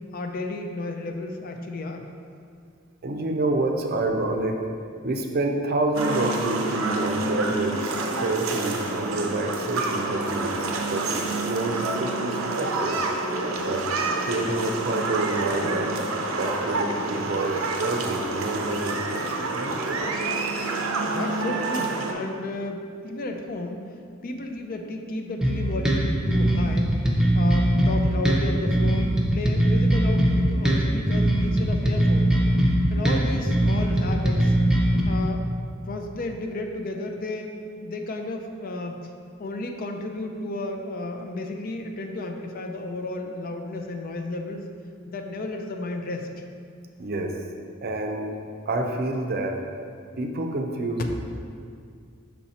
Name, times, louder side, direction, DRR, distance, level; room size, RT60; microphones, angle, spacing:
voice 1, 0.1-2.1 20.7-23.9 24.2-26.9 27.3-32.4 32.9-34.6 35.1-35.5 35.9-39.1 39.4-44.7 45.1-46.3, left 2 dB, 45° left, 4 dB, 0.5 m, -33 dB
voice 2, 3.0-4.6 5.0-10.6 10.9-13.0 13.6-13.9 14.2-16.1 16.4-20.0 47.0-47.4 47.8-48.4 48.7-49.6 50.2-51.2, right 2 dB, 50° right, 3 dB, 0.5 m, -28 dB
sound 1, 5.9-22.1, right 3 dB, 90° right, 0.6 m, -28 dB
sound 2, 25.4-35.0, right 1 dB, 5° right, 0.6 m, -21 dB
5.7 x 4.2 x 4.2 m, 2.2 s
head